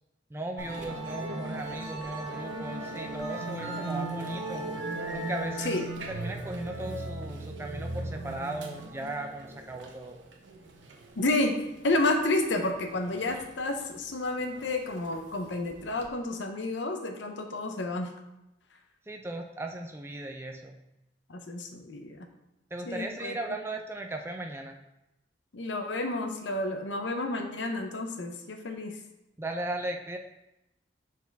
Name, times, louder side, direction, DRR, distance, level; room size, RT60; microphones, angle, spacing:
voice 1, 0.3-4.7 5.1-10.2 19.1-20.8 22.7-24.8 29.4-30.2, right 2 dB, 15° right, 3 dB, 0.4 m, -37 dB
Musical instrument, 0.6-16.1, right 2 dB, 85° right, 0.8 m, -38 dB
voice 2, 11.2-18.1 21.3-22.3 22.9-23.4 25.5-29.0, left 2 dB, 80° left, 5 dB, 0.7 m, -30 dB
6.1 x 4.6 x 3.4 m, 0.92 s
head